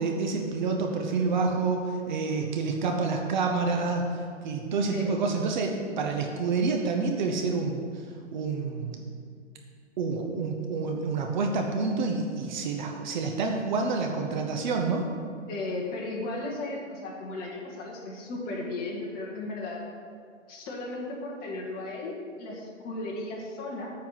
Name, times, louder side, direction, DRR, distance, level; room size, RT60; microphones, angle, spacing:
voice 1, 0.0-8.1 8.3-9.0 10.0-15.1, right 4 dB, 40° right, 2 dB, 0.8 m, -28 dB
voice 2, 15.5-19.8 20.5-23.9, left 2 dB, 25° left, -3 dB, 1.7 m, -35 dB
9.2 x 4.7 x 7.4 m, 2.1 s
hypercardioid pair, 140°, 38 cm